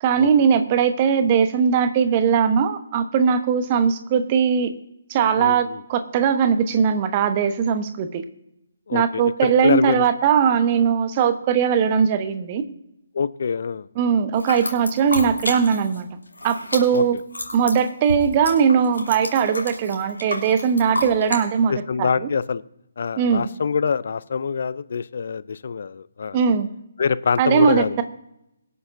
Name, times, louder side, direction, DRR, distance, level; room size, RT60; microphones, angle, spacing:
voice 1, 0.0-4.7 5.1-8.2 8.9-12.6 14.0-16.1 16.4-17.2 17.5-22.3 23.2-23.5 26.3-26.7 27.4-28.0, right 7 dB, 30° right, 9 dB, 1.0 m, -20 dB
voice 2, 5.3-5.8 8.9-10.1 13.1-13.9 16.9-17.2 21.7-22.6 23.0-26.4 27.0-28.0, left 6 dB, 50° left, 18 dB, 0.5 m, -25 dB
sound 1, 14.3-16.0 16.3-21.4, left 1 dB, 80° left, 2.9 m, -31 dB
23.5 x 9.6 x 2.7 m, 0.85 s
figure-of-eight pair, 140°, 0 cm